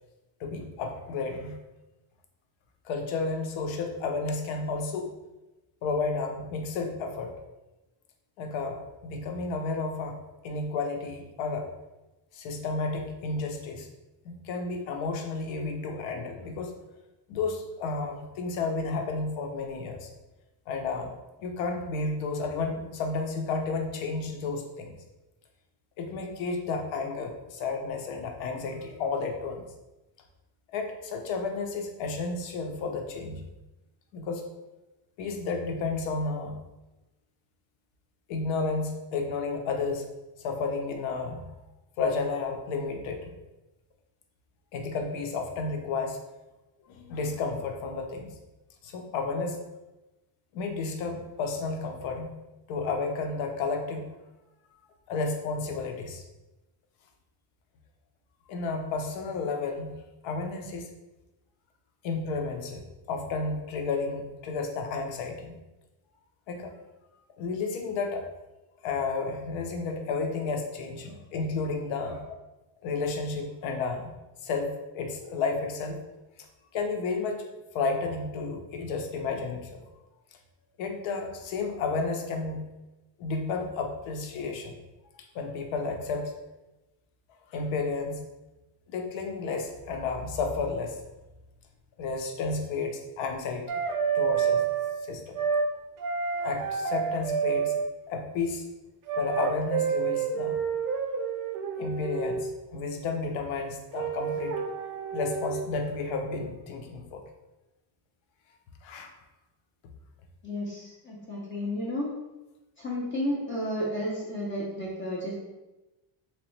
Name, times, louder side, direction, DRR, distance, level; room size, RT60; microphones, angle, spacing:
voice 1, 0.4-1.6 2.8-5.1 5.8-7.3 8.4-11.7 12.3-13.9 14.2-16.7 17.3-20.1 20.7-21.1 21.4-24.9 26.0-29.6 30.7-33.4 34.1-34.4 35.2-36.6 38.3-40.1 40.4-41.5 42.0-43.4 44.7-46.2 46.9-48.4 48.8-49.6 50.5-52.3 52.7-54.1 55.1-56.2 58.5-60.9 62.0-65.5 66.5-66.7 67.4-68.2 68.8-72.3 72.8-74.1 74.4-76.0 76.4-76.5 76.7-77.5 77.7-79.8 80.8-82.7 83.2-84.8 85.1-86.3 87.5-88.2 88.9-91.0 92.0-93.8 94.1-94.6 95.0-95.4 96.4-97.7 98.1-98.7 99.2-100.6 101.8-107.2 108.8-109.1, left 4 dB, 70° left, 4 dB, 0.7 m, -32 dB
sound 1, 93.7-94.9 95.3-95.7 96.0-97.9 99.1-102.5 103.9-105.7, right 6 dB, 45° right, 0.4 m, -29 dB
voice 2, 110.4-112.1 112.8-115.3, left 1 dB, 25° left, -4 dB, 0.5 m, -32 dB
3.2 x 3.0 x 3.1 m, 1.0 s
cardioid pair, 165°, 48 cm